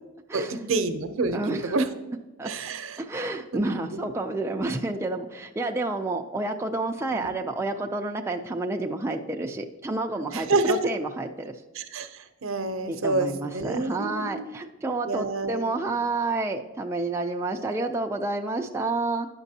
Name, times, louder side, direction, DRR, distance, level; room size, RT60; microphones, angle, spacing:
voice 1, 0.3-1.9 2.4-3.0 3.5-3.7 3.9-4.0 4.5-4.7 7.2-7.3 10.3-10.8 11.8-13.3 13.5-14.5 15.1-15.7, right 3 dB, 75° right, 9 dB, 0.6 m, -28 dB
voice 2, 1.3-1.8 2.4-2.5 3.0-11.6 12.9-19.3, right 2 dB, 15° right, 2 dB, 0.3 m, -29 dB
9.8 x 6.0 x 2.7 m, 1.1 s
head